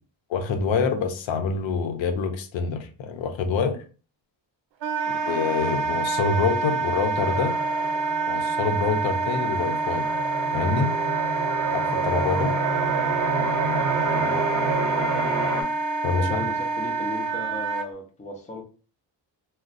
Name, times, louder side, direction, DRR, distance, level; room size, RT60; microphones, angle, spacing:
voice 1, 0.3-3.8 5.1-7.5 8.3-10.1 10.5-10.9 11.7-12.5 16.0-16.4, left 5 dB, 80° left, 6 dB, 0.6 m, -26 dB
Wind instrument woodwind instrument, 4.8-17.9, right 4 dB, 75° right, 0.5 m, -27 dB
sound 1, 7.2-15.6, right 3 dB, 40° right, 0.8 m, -29 dB
voice 2, 14.1-14.8 16.2-18.6, left 2 dB, 15° left, 2 dB, 0.5 m, -36 dB
2.5 x 2.1 x 3.8 m, 0.37 s
wide cardioid pair, 160°, 45 cm